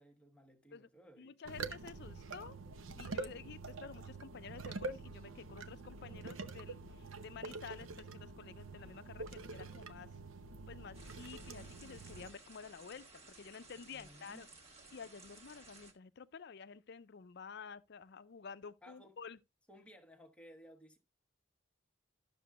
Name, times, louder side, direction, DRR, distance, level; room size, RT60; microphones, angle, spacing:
voice 1, 0.0-1.4 13.9-14.5 18.8-19.2 19.7-21.0, equal, 5° left, 1.2 m, -58 dB
voice 2, 1.2-2.6 3.0-10.1 10.7-14.5 14.9-19.4, left 6 dB, 55° left, 0.5 m, -51 dB
sound 1, 1.4-12.3, right 3 dB, 90° right, 0.8 m, -46 dB
sound 2, 10.9-15.9, right 3 dB, 30° right, 1.6 m, -58 dB
12.0 x 6.8 x 2.3 m
head